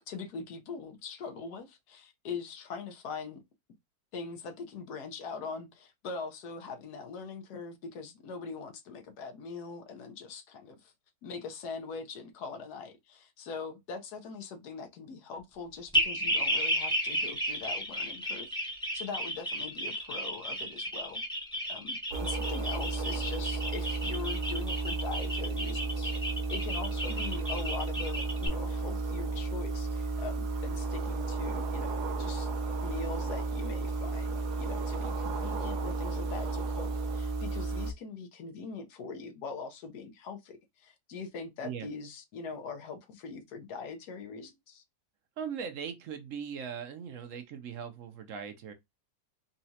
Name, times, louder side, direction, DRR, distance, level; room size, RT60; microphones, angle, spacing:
voice 1, 0.1-3.4 4.1-10.9 11.2-18.5 18.9-21.2 21.7-26.1 26.5-32.5 32.8-44.8, left 5 dB, 80° left, 1.4 m, -42 dB
sound 1, 15.9-28.5, equal, 5° left, 0.7 m, -33 dB
sound 2, 22.1-37.9, right 3 dB, 90° right, 1.2 m, -33 dB
voice 2, 45.4-48.7, right 7 dB, 60° right, 0.9 m, -39 dB
4.1 x 2.3 x 2.7 m
omnidirectional pair, 1.7 m